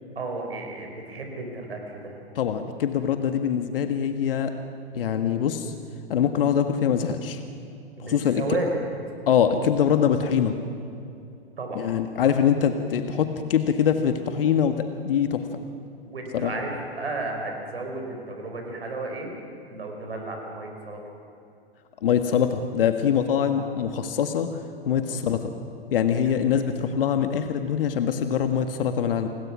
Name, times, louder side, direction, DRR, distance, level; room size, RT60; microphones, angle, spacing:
voice 1, 0.1-2.2 8.0-8.8 11.6-11.8 12.2-12.3 16.0-19.4 19.7-21.0 23.5-23.6 26.2-26.3, right 2 dB, 75° right, 3 dB, 4.9 m, -33 dB
voice 2, 2.3-4.5 4.9-5.7 6.1-7.4 8.0-8.6 9.3-10.5 11.7-15.4 16.3-16.5 22.0-24.5 24.8-25.5 25.9-29.3, left 8 dB, 65° left, 7 dB, 1.6 m, -23 dB
29.5 x 20.5 x 6.1 m, 2.6 s
figure-of-eight pair, 100°, 30 cm